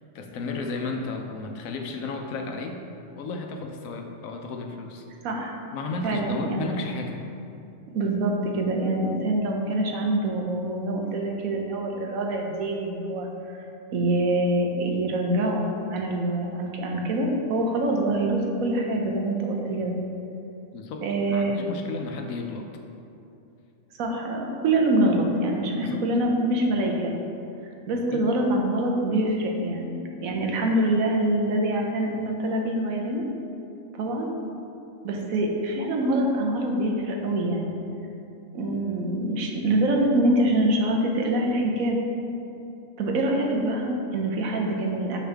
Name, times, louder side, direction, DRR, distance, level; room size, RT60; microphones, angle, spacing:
voice 1, 0.1-2.8 3.2-5.0 5.7-7.2 20.7-22.7 25.8-26.1 28.1-28.3, left 3 dB, 85° left, 3 dB, 1.1 m, -33 dB
voice 2, 5.2-5.7 6.0-6.7 7.9-13.3 13.9-20.0 21.0-21.5 24.0-27.1 27.9-33.2 34.0-34.3 35.0-37.8 38.5-42.0 43.0-45.2, right 1 dB, 90° right, 1 dB, 1.2 m, -25 dB
6.2 x 5.1 x 3.4 m, 2.7 s
omnidirectional pair, 1.4 m